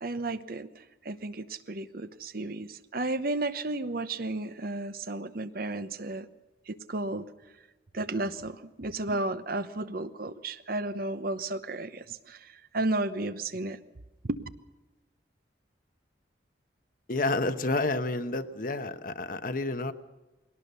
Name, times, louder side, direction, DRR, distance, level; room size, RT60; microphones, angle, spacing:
voice 1, 0.0-6.3 6.7-7.3 7.9-13.8 14.2-14.4, right 2 dB, 55° right, 12 dB, 1.0 m, -33 dB
voice 2, 17.1-19.9, left 2 dB, 50° left, 10 dB, 1.1 m, -29 dB
21.5 x 18.0 x 6.8 m, 1.1 s
head